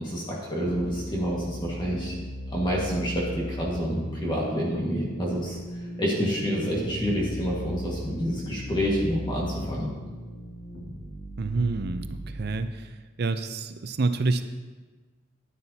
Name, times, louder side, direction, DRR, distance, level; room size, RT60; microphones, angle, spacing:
voice 1, 0.0-2.2 2.5-5.6 6.0-9.9, equal, 25° left, -4 dB, 1.7 m, -28 dB
sound 1, 0.6-12.6, equal, 85° left, 2.2 m, -37 dB
voice 2, 11.4-12.9 13.2-14.4, right 3 dB, 55° right, 10 dB, 0.6 m, -27 dB
13.5 x 9.8 x 2.8 m, 1.3 s
head